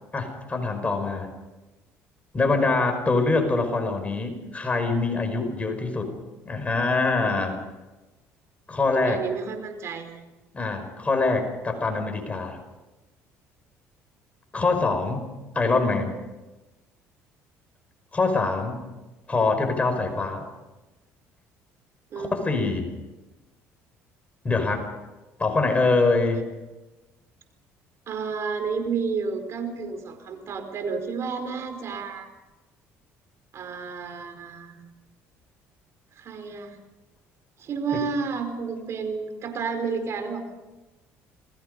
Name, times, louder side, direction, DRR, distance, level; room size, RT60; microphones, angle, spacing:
voice 1, 0.1-1.3 2.3-6.1 6.5-7.6 8.7-9.2 10.5-12.6 14.5-15.2 15.5-16.2 18.1-18.8 19.3-20.4 22.2-22.9 24.4-24.9 25.4-26.4, left 3 dB, 25° left, 5 dB, 5.3 m, -24 dB
voice 2, 8.9-10.1 22.1-22.7 28.1-32.3 33.5-34.8 36.2-36.8 37.6-40.4, right 5 dB, 55° right, 7 dB, 4.7 m, -31 dB
28.5 x 20.5 x 5.4 m, 1.1 s
supercardioid pair, 90°, 6 cm